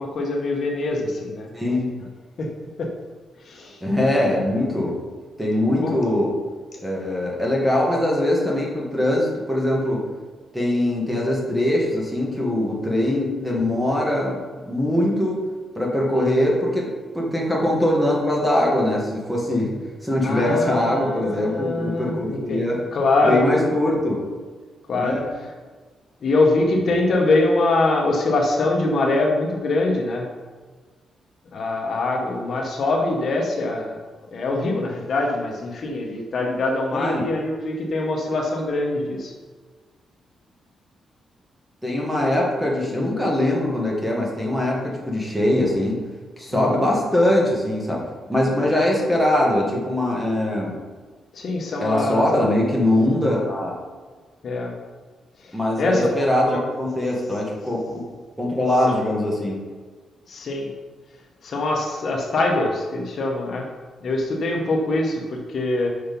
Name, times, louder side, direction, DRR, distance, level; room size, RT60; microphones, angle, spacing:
voice 1, 0.0-1.5 2.4-2.5 2.8-2.9 3.4-3.8 5.8-6.0 16.2-16.3 20.2-23.4 24.9-25.2 26.2-30.3 31.5-34.0 34.3-39.3 46.5-46.8 51.3-52.2 54.4-54.7 55.4-56.6 58.9-59.0 60.3-60.7 61.4-63.7 64.0-65.9, left 2 dB, 50° left, 0 dB, 1.1 m, -23 dB
voice 2, 1.5-1.9 3.8-5.0 5.4-6.3 6.8-10.0 10.5-14.4 14.7-15.4 15.8-16.9 17.1-22.8 23.2-24.3 25.0-25.2 26.8-26.9 36.9-37.3 41.8-46.0 46.4-48.0 48.3-50.8 51.8-53.7 55.5-57.8 58.4-59.6, left 1 dB, 5° right, -3 dB, 1.7 m, -22 dB
6.5 x 5.8 x 5.3 m, 1.4 s
wide cardioid pair, 150°, 0 cm